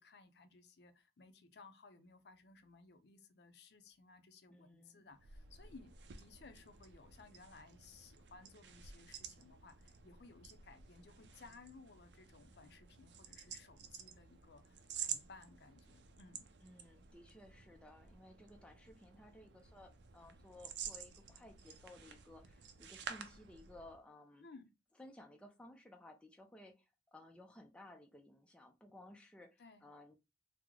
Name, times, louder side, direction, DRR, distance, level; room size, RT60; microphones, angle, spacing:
voice 1, 0.0-5.9 6.2-16.5 24.4-24.7 29.6-29.8, left 4 dB, 65° left, 0.5 m, -60 dB
voice 2, 4.5-5.1 16.6-24.5 25.0-30.1, left 1 dB, 5° left, 0.3 m, -58 dB
sound 1, 5.1-24.0, right 7 dB, 75° right, 0.4 m, -51 dB
3.0 x 2.0 x 3.6 m
head